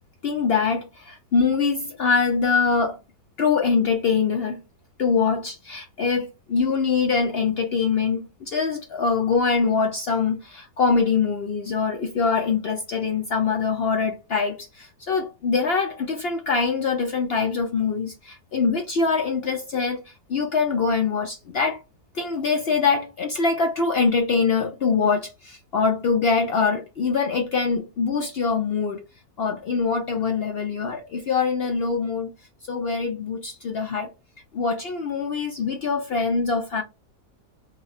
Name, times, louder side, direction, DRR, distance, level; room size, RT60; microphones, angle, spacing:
voice 1, 0.2-3.0 3.4-4.6 5.0-20.0 20.3-21.8 22.1-29.0 29.4-32.3 32.7-34.1 34.5-36.8, left 5 dB, 70° left, 0.5 m, -23 dB
3.0 x 2.3 x 4.0 m
omnidirectional pair, 1.7 m